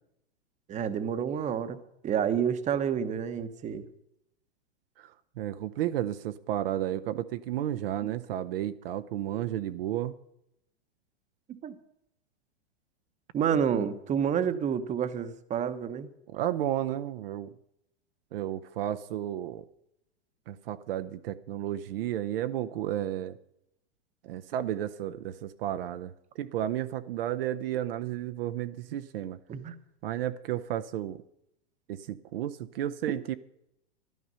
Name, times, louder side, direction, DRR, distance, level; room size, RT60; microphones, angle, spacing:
voice 1, 0.7-1.8 2.0-3.8 8.0-8.1 11.5-11.8 13.3-16.1 29.5-29.7, right 8 dB, 20° right, 11 dB, 1.0 m, -29 dB
voice 2, 5.0-10.1 16.3-17.5 18.3-19.6 20.5-23.4 24.2-29.4 30.0-31.2 31.9-33.3, right 12 dB, 60° right, 9 dB, 0.8 m, -32 dB
12.5 x 11.5 x 5.6 m, 0.80 s
hypercardioid pair, 115°, 33 cm